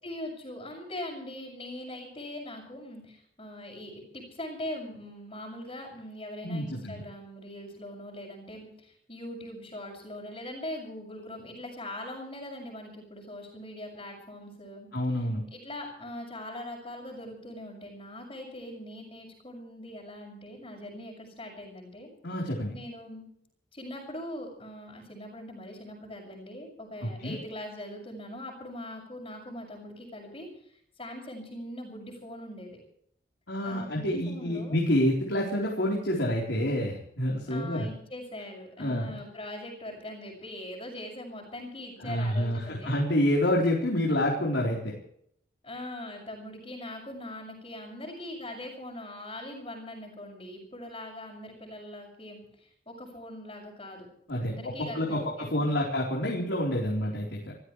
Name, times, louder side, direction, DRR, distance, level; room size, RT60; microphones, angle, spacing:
voice 1, 0.0-14.9 15.5-22.1 22.7-23.2 23.7-32.8 33.6-34.8 37.5-43.0 45.6-54.1 54.4-55.8, left 1 dB, 30° left, -5 dB, 6.4 m, -41 dB
voice 2, 6.4-7.0 14.9-15.4 22.2-22.8 27.0-27.4 33.5-37.9 38.8-39.1 42.0-44.9 54.3-54.5 54.8-57.4, left 1 dB, 85° left, -2 dB, 4.1 m, -28 dB
29.0 x 15.0 x 3.3 m, 0.69 s
head